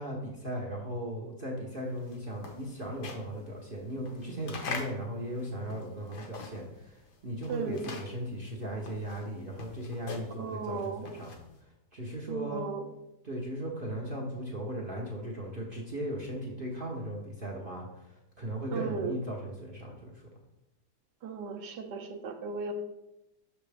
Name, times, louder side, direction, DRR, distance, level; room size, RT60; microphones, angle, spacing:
voice 1, 0.0-11.3 11.9-12.7 13.2-20.2, equal, 40° right, -1 dB, 0.8 m, -37 dB
sound 1, 1.8-6.8 7.1-11.6, left 4 dB, 60° left, 1.5 m, -43 dB
voice 2, 7.5-7.9 10.4-11.1 12.3-12.8 18.7-19.2 21.2-22.7, right 5 dB, 70° right, 4 dB, 1.3 m, -36 dB
6.3 x 5.9 x 3.4 m, 0.89 s
omnidirectional pair, 2.1 m